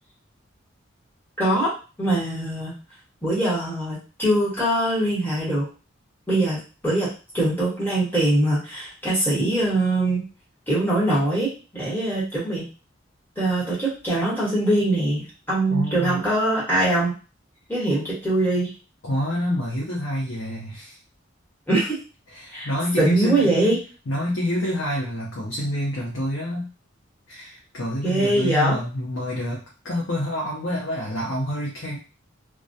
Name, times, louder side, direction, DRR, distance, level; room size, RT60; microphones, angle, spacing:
voice 1, 1.4-1.7 2.0-2.8 3.2-5.7 6.3-7.1 7.3-10.2 10.7-12.7 13.4-17.1 17.7-18.7 21.7-22.0 22.5-22.7 23.0-23.8 28.0-28.8, right 1 dB, 10° left, -8 dB, 1.1 m, -22 dB
voice 2, 15.7-16.2 19.0-21.0 22.3-23.8 24.1-26.7 27.3-32.0, left 1 dB, 70° left, -5 dB, 0.7 m, -27 dB
2.3 x 2.2 x 2.6 m, 0.34 s
head